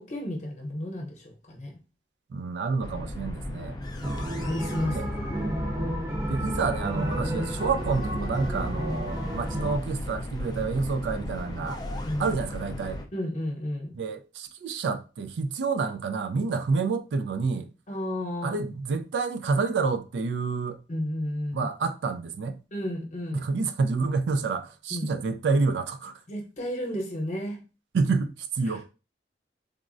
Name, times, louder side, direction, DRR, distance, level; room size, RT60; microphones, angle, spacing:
voice 1, 0.0-1.8 4.4-5.4 12.0-12.3 13.1-13.9 17.9-18.6 20.9-21.7 22.7-23.5 24.9-25.1 26.3-27.6 28.6-28.8, left 1 dB, 40° left, 0.8 m, -32 dB
voice 2, 2.3-3.8 4.9-5.1 6.3-11.8 12.2-13.0 14.0-17.7 18.4-20.8 21.5-22.6 23.3-26.1 27.9-28.9, right 4 dB, 80° right, 0.3 m, -28 dB
sound 1, 2.8-13.1, left 1 dB, 25° left, 0.3 m, -36 dB
sound 2, 4.0-9.8, equal, 15° right, 0.7 m, -32 dB
3.5 x 2.0 x 2.5 m
head